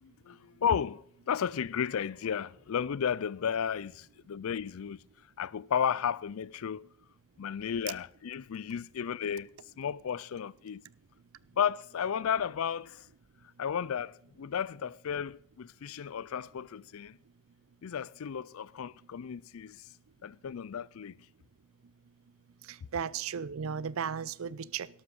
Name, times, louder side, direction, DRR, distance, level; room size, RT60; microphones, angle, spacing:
voice 1, 0.0-5.0 5.4-6.9 7.4-9.5 9.8-10.8 11.6-13.0 13.6-17.2 17.8-19.8 20.2-21.2, left 7 dB, 90° left, 0.4 m, -33 dB
voice 2, 22.7-24.9, right 7 dB, 80° right, 0.5 m, -35 dB
13.0 x 12.0 x 5.4 m
head